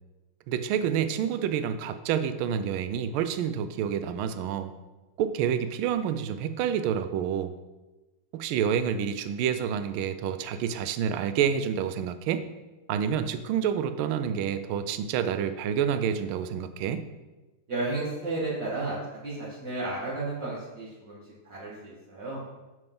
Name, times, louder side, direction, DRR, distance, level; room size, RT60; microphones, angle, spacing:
voice 1, 0.5-4.7 5.2-7.5 8.3-12.5 12.9-17.0, right 8 dB, 80° right, 10 dB, 1.4 m, -28 dB
voice 2, 17.7-21.2 21.4-22.4, right 2 dB, 55° right, -10 dB, 2.5 m, -33 dB
7.7 x 7.7 x 3.7 m, 1.1 s
omnidirectional pair, 2.3 m